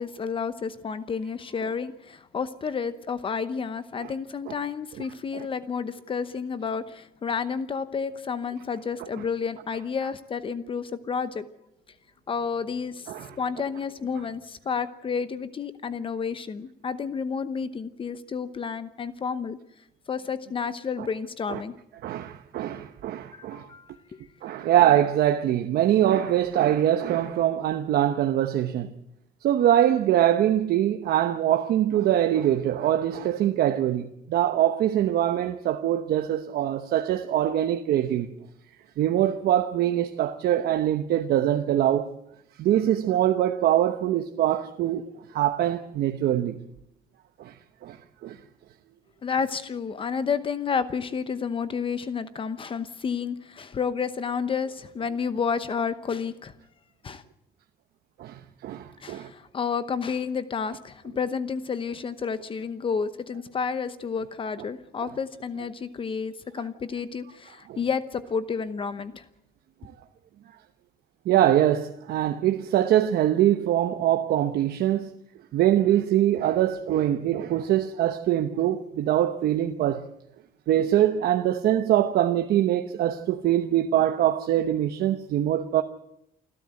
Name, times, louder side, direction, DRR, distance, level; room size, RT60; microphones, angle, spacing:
voice 1, 0.0-11.5 12.3-19.6 20.1-21.7 23.3-24.2 49.2-56.5 57.0-57.2 59.0-69.2, left 6 dB, 35° left, 0.9 m, -30 dB
voice 2, 22.0-23.7 24.4-28.9 29.4-38.3 39.0-42.1 42.6-45.0 45.3-46.6 47.4-47.5 47.8-48.0 48.2-48.4 58.2-59.3 67.7-67.8 69.8-69.9 71.3-75.1 75.5-80.0 80.7-85.8, right 11 dB, 90° right, 1.0 m, -23 dB
28.5 x 12.5 x 7.8 m
cardioid pair, 155°, 16 cm